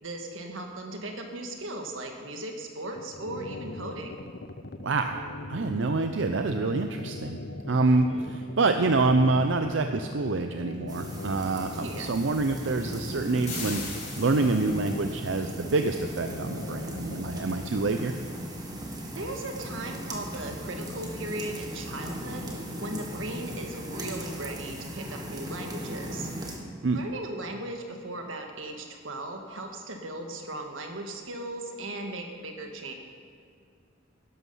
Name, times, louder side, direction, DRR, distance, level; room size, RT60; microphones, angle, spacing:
voice 1, 0.0-4.2 8.1-8.2 11.7-12.1 19.2-26.3 26.9-32.9, right 1 dB, 90° right, 3 dB, 1.7 m, -37 dB
sound 1, 3.0-17.7, left 2 dB, 55° left, 0.7 m, -41 dB
voice 2, 4.8-5.2 5.5-7.4 7.7-18.1 26.8-27.1, right 3 dB, 70° right, 6 dB, 0.6 m, -26 dB
sound 2, 10.9-26.6, equal, 20° right, 1.6 m, -38 dB
sound 3, 13.5-15.0, left 3 dB, 35° left, 3.7 m, -38 dB
12.5 x 11.0 x 5.6 m, 2.2 s
head